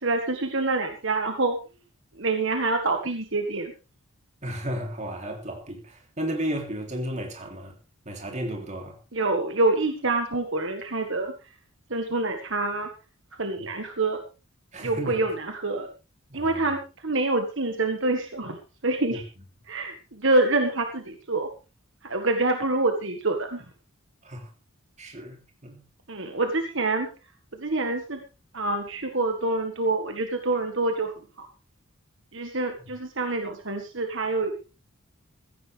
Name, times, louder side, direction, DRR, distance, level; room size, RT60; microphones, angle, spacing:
voice 1, 0.0-1.6 2.2-3.7 9.1-11.5 11.9-12.9 13.3-14.2 14.8-15.9 16.3-19.2 19.7-21.5 22.0-23.7 26.1-27.1 27.5-28.2 28.5-31.5 32.3-34.6, right 2 dB, 60° right, 1.6 m, -26 dB
voice 2, 4.4-7.7 8.0-9.0 13.6-13.7 14.7-15.2 16.3-16.7 19.1-19.2 24.2-24.5 25.0-25.8, equal, 30° right, 3.3 m, -33 dB
16.0 x 15.0 x 3.5 m
head